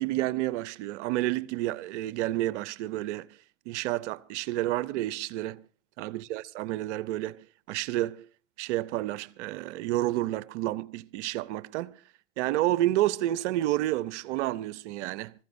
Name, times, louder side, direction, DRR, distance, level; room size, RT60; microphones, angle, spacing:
voice 1, 0.0-3.3 3.7-5.6 6.0-8.3 8.6-12.0 12.4-15.3, right 15 dB, 65° right, 0.8 m, -30 dB
25.5 x 15.0 x 2.6 m
hypercardioid pair, 110°, 39 cm